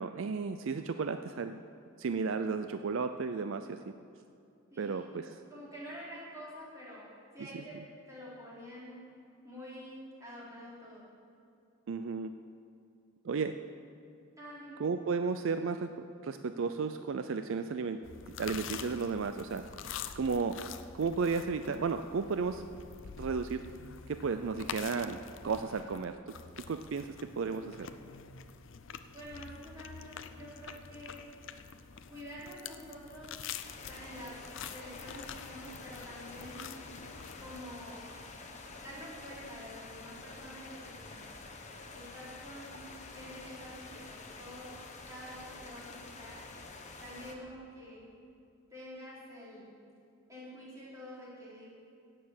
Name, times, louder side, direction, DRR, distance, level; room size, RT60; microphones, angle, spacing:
voice 1, 0.0-1.6 2.0-3.9 4.8-5.4 7.5-7.6 11.9-12.3 13.2-13.6 14.8-18.0 18.4-19.7 20.2-20.7 20.9-22.7 23.2-23.6 24.1-26.4 26.7-27.9, right 5 dB, 60° right, 9 dB, 0.4 m, -34 dB
voice 2, 4.7-5.0 5.5-7.1 7.3-9.0 9.4-11.1 14.4-14.8 29.1-31.2 32.1-33.3 33.8-34.4 34.7-36.8 37.4-38.0 38.8-41.3 41.9-42.8 43.1-44.8 45.1-46.4 47.0-48.0 48.7-49.7 50.3-51.6, equal, 15° right, -8 dB, 4.0 m, -47 dB
sound 1, 18.0-37.6, left 7 dB, 60° left, 0.5 m, -46 dB
sound 2, 33.6-47.4, left 3 dB, 30° left, 1.1 m, -48 dB
16.5 x 6.7 x 7.5 m, 2.6 s
head